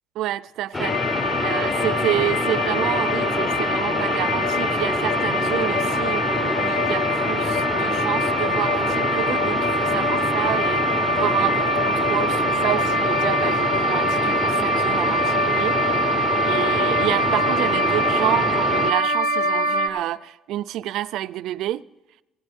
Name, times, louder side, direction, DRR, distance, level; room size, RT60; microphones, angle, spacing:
voice 1, 0.2-10.8 11.2-16.1 16.4-21.8, right 14 dB, 70° right, 0.4 m, -29 dB
sound 1, 0.7-18.9, left 2 dB, 20° left, 0.8 m, -27 dB
sound 2, 0.8-19.9, equal, 85° left, 1.0 m, -23 dB
18.0 x 14.0 x 3.6 m
cardioid pair, 95°, 0 cm